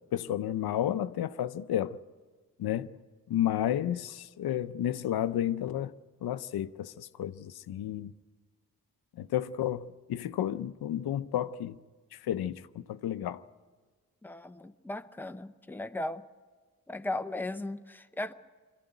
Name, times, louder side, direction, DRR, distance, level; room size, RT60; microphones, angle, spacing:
voice 1, 0.1-2.0 2.6-3.0 3.3-5.9 6.2-8.1 9.2-11.8 12.1-13.4, left 11 dB, 90° left, 0.6 m, -32 dB
voice 2, 14.2-16.2 16.9-18.3, left 2 dB, 5° left, 0.8 m, -37 dB
22.0 x 14.5 x 9.1 m
cardioid pair, 75°, 37 cm